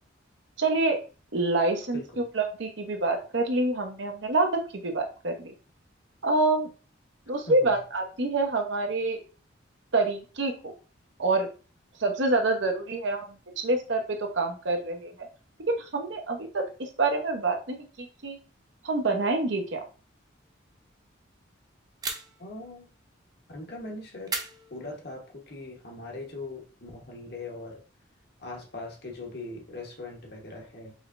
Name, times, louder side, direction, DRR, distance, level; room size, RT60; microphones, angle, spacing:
voice 1, 0.6-1.0 1.3-4.5 4.8-5.5 6.2-6.7 7.3-9.2 9.9-10.7 11.2-11.5 12.0-15.3 15.7-18.4 18.8-19.8, right 2 dB, 65° right, 4 dB, 0.8 m, -27 dB
sound 1, 22.0-22.6 24.3-25.3, right 4 dB, 20° right, 0.5 m, -36 dB
voice 2, 22.4-22.9 23.5-24.3 24.7-27.8 28.4-30.9, left 2 dB, 50° left, 1 dB, 1.1 m, -40 dB
4.8 x 3.2 x 2.5 m, 0.35 s
head